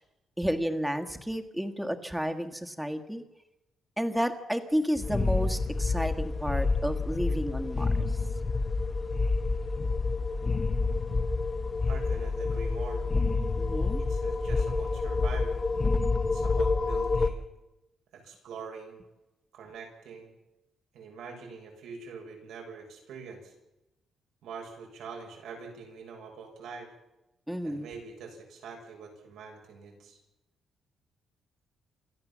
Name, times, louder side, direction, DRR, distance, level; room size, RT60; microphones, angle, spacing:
voice 1, 0.4-3.2 4.0-8.2 13.6-14.0 27.5-27.9, equal, 5° right, 5 dB, 1.6 m, -31 dB
sound 1, 5.0-17.3, left 3 dB, 25° left, 1.2 m, -28 dB
voice 2, 11.8-13.0 14.0-15.6 16.3-17.5 18.1-19.0 19.5-20.3 20.9-23.5 24.4-26.9 27.6-30.2, right 5 dB, 85° right, 2 dB, 6.9 m, -44 dB
27.5 x 13.5 x 7.4 m, 0.94 s
cardioid pair, 160°, 0 cm